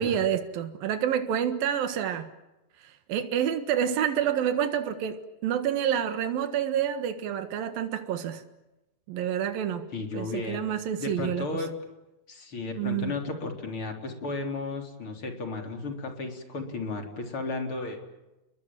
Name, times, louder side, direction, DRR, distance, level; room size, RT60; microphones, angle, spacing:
voice 1, 0.0-2.3 2.8-8.4 9.1-9.9 10.1-11.5 12.8-13.2, right 9 dB, 85° right, 3.4 m, -28 dB
voice 2, 9.9-10.6 11.0-11.7 12.3-18.0, left 3 dB, 40° left, 4.4 m, -34 dB
30.0 x 22.5 x 7.5 m
omnidirectional pair, 4.0 m